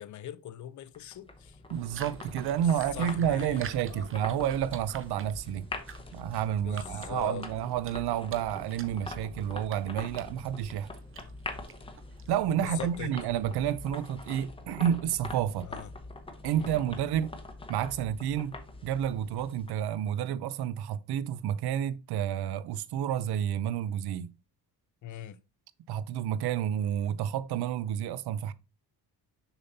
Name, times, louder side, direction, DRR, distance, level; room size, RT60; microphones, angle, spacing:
voice 1, 0.0-1.6 2.9-4.1 6.6-7.5 12.6-13.1 15.6-15.9 16.5-16.8 25.0-25.4, left 10 dB, 50° left, 0.5 m, -41 dB
sound 1, 0.9-20.0, left 2 dB, 15° left, 0.7 m, -44 dB
sound 2, 1.7-12.6, right 6 dB, 30° right, 0.6 m, -49 dB
voice 2, 1.7-5.7 6.1-10.9 12.3-15.7 16.4-17.4 17.7-18.6 18.8-24.3 25.9-28.5, right 10 dB, 70° right, 0.6 m, -30 dB
6.9 x 5.5 x 2.6 m
wide cardioid pair, 175°, 40 cm